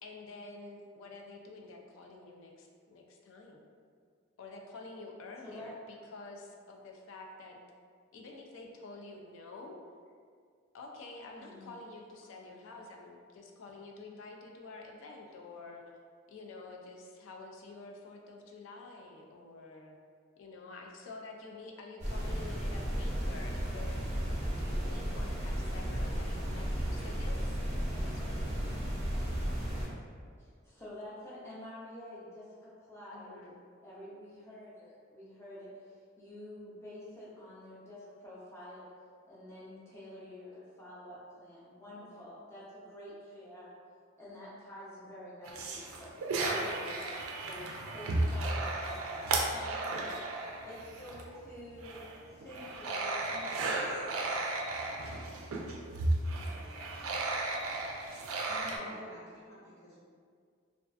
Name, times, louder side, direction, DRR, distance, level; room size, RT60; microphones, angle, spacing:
voice 1, 0.0-3.6 4.4-7.6 8.1-9.8 10.7-15.8 16.3-20.0 20.4-24.0 24.4-27.6 28.0-28.9 33.1-33.5, left 3 dB, 70° left, 1 dB, 0.3 m, -49 dB
voice 2, 11.4-11.7 26.2-26.3 30.4-33.4 33.8-38.9 39.2-43.7 44.2-47.0 47.4-50.4 50.7-53.9 58.4-59.1, left 1 dB, 15° left, -9 dB, 0.5 m, -48 dB
sound 1, 22.0-29.9, equal, 30° right, 0.6 m, -34 dB
sound 2, 45.5-51.4 51.7-58.8, right 2 dB, 85° right, 0.3 m, -34 dB
voice 3, 56.2-57.2 58.7-60.0, equal, 50° left, -10 dB, 0.9 m, -52 dB
2.4 x 2.3 x 2.3 m, 2.1 s
head